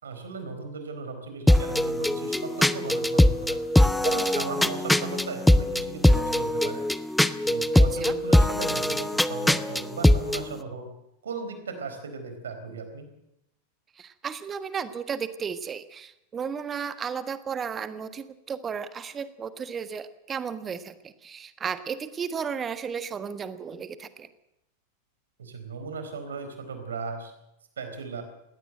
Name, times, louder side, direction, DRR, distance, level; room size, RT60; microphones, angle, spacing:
voice 1, 0.0-3.6 4.0-6.9 7.4-10.9 11.2-13.1 25.4-27.3 27.8-28.2, right 4 dB, 65° right, 7 dB, 4.4 m, -36 dB
sound 1, 1.5-10.4, left 1 dB, 5° left, 0.8 m, -22 dB
voice 2, 7.7-8.2 14.0-24.3, right 6 dB, 20° right, 12 dB, 1.4 m, -34 dB
20.5 x 17.0 x 7.9 m, 0.84 s
figure-of-eight pair, 90°, 0 cm